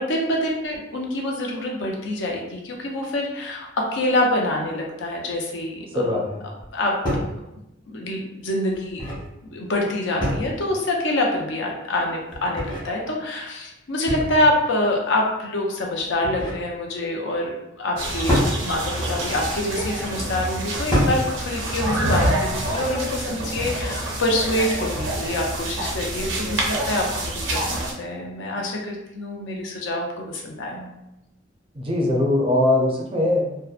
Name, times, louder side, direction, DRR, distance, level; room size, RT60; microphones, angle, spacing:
voice 1, 0.0-6.2 6.7-6.9 7.3-7.4 7.9-9.0 9.4-30.9, left 1 dB, 70° left, 0 dB, 0.5 m, -26 dB
voice 2, 5.9-6.4 31.7-33.6, left 1 dB, 30° right, -1 dB, 0.4 m, -21 dB
sound 1, 6.6-6.7 7.0-7.3 8.7-9.3 10.2-10.7 12.3-12.9 14.1-14.6 16.0-16.6 18.3-18.6 19.6-19.9 20.9-21.3, equal, 25° left, 0.8 m, -25 dB
sound 2, 18.0-27.9, right 1 dB, 80° right, 0.6 m, -27 dB
2.7 x 2.1 x 2.4 m, 0.91 s
head